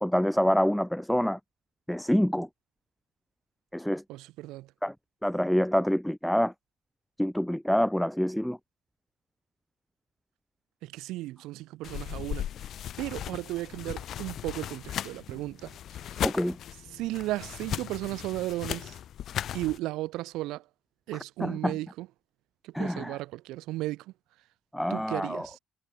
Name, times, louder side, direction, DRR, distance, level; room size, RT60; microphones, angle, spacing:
voice 1, 0.0-1.4 1.9-2.5 3.7-4.0 4.8-4.9 5.2-6.5 7.2-8.6 16.2-16.6 21.4-21.7 22.7-23.2 24.7-25.5, equal, ahead, 0.8 m, -26 dB
voice 2, 4.1-4.7 10.8-12.5 13.0-15.7 16.1-16.2 16.9-19.0 19.5-20.6 21.1-22.1 22.6-24.1 24.9-25.6, right 17 dB, 75° right, 4.9 m, -35 dB
sound 1, 11.8-19.8, left 10 dB, 50° left, 7.7 m, -37 dB
cardioid pair, 140°, 0 cm